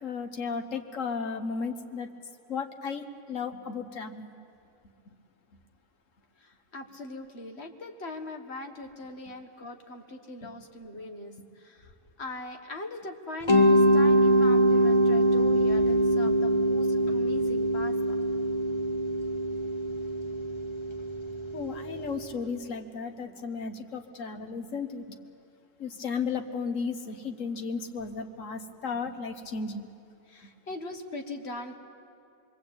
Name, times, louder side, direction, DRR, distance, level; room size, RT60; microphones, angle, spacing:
voice 1, 0.0-2.1 2.5-4.3 10.4-10.5 16.3-16.4 21.5-25.0 25.8-29.9, left 5 dB, 85° left, 6 dB, 1.7 m, -34 dB
voice 2, 6.4-11.9 12.2-18.0 30.3-31.8, left 2 dB, 55° left, 5 dB, 1.9 m, -41 dB
Mallet percussion, 13.5-22.2, right 1 dB, 25° left, 1.1 m, -24 dB
25.5 x 22.5 x 8.8 m, 2.7 s
omnidirectional pair, 1.3 m